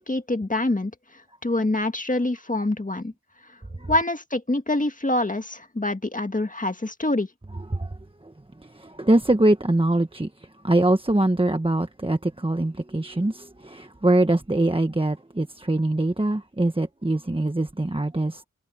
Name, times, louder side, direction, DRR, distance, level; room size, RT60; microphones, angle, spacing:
voice 1, 0.0-3.1 3.9-7.3, left 2 dB, 25° left, 1.8 m, -26 dB
voice 2, 8.6-18.4, right 1 dB, 15° right, 1.2 m, -23 dB
wide cardioid pair, 60°, 31 cm